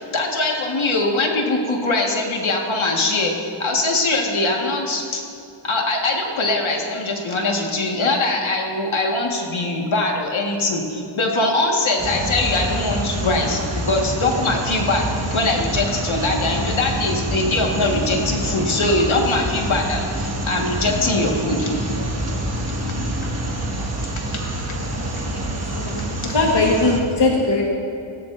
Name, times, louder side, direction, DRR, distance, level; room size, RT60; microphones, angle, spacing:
voice 1, 0.0-5.2 5.6-21.7 26.2-26.3, left 2 dB, 70° left, 0 dB, 1.9 m, -22 dB
sound 1, 12.0-27.0, right 1 dB, 30° right, 1.6 m, -26 dB
voice 2, 22.7-23.1 25.7-26.0 26.3-27.6, left 2 dB, 55° left, -2 dB, 1.6 m, -20 dB
17.0 x 16.0 x 2.7 m, 2.6 s
wide cardioid pair, 115°, 50 cm